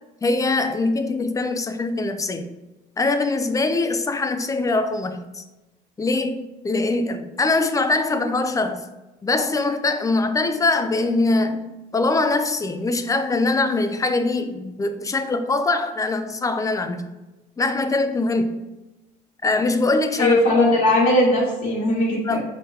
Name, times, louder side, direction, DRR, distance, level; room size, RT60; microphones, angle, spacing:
voice 1, 0.2-2.5 3.0-5.4 6.0-8.8 9.2-17.1 17.6-18.6 19.4-20.4 22.2-22.4, left 3 dB, 20° left, 8 dB, 0.4 m, -22 dB
voice 2, 20.2-22.4, left 1 dB, 55° left, -7 dB, 1.5 m, -19 dB
5.1 x 3.6 x 2.8 m, 1.1 s
cardioid pair, 110°, 17 cm